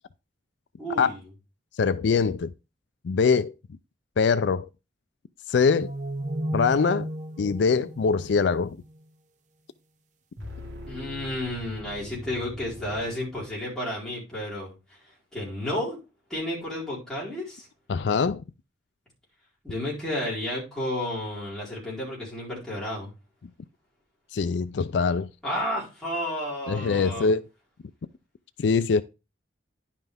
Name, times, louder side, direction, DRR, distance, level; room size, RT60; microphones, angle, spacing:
voice 1, 0.8-1.3 10.9-15.0 15.3-16.0 16.3-17.7 19.6-23.1 25.4-27.3, left 1 dB, 5° left, 4.4 m, -32 dB
voice 2, 1.8-2.5 3.0-3.5 4.2-4.7 5.5-5.9 6.5-7.1 7.4-8.8 17.9-18.4 24.3-25.3 26.7-27.4 28.6-29.0, left 5 dB, 70° left, 0.4 m, -23 dB
sound 1, 5.6-9.0, right 1 dB, 40° right, 0.8 m, -34 dB
sound 2, 10.4-13.8, equal, 85° right, 2.1 m, -41 dB
10.5 x 5.7 x 3.5 m
head